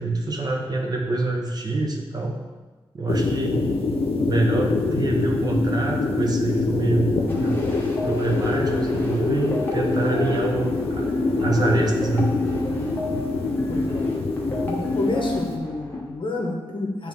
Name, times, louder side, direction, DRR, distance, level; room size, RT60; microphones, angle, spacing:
voice 1, 0.0-2.3 2.9-3.6 4.2-11.1 11.4-12.3, right 2 dB, 45° right, 1 dB, 0.7 m, -25 dB
sound 1, 3.1-15.6, left 3 dB, 90° left, 0.6 m, -25 dB
sound 2, 7.3-16.0, left 1 dB, 20° left, 1.0 m, -31 dB
voice 2, 13.7-14.1 14.7-17.1, left 2 dB, 60° left, 1 dB, 0.9 m, -29 dB
9.1 x 3.1 x 3.5 m, 1.3 s
wide cardioid pair, 140°, 10 cm